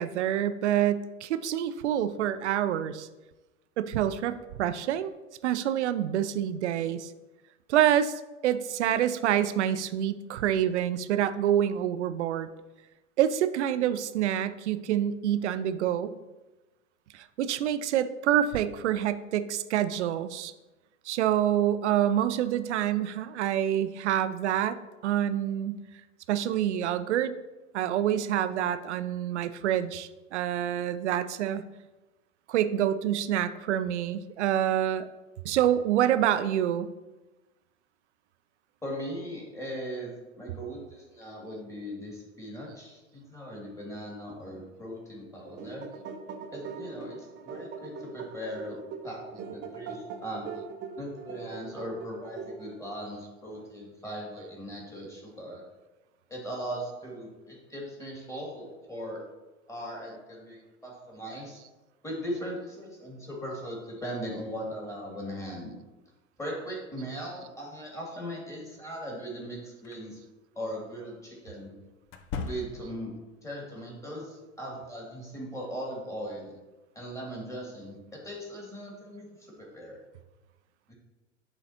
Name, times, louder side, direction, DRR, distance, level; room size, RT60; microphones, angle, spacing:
voice 1, 0.0-3.1 3.8-5.1 5.4-7.1 7.7-12.5 13.2-16.1 17.1-20.5 21.1-24.8 25.0-25.8 26.3-27.3 27.7-31.6 32.5-35.0 35.4-36.9, right 11 dB, 60° right, 12 dB, 0.5 m, -27 dB
voice 2, 38.8-45.9 46.5-50.5 51.0-55.6 56.3-59.2 59.7-61.6 62.0-65.7 66.4-70.2 70.6-71.8 72.4-73.1 73.4-76.5 76.9-80.0 80.9-81.0, equal, 10° left, -2 dB, 2.2 m, -39 dB
sound 1, 45.3-53.0, right 5 dB, 25° right, 0.8 m, -41 dB
sound 2, 69.8-70.0 72.1-73.1, left 5 dB, 30° left, 0.5 m, -37 dB
10.5 x 3.9 x 2.8 m, 1.1 s
figure-of-eight pair, 90°, 39 cm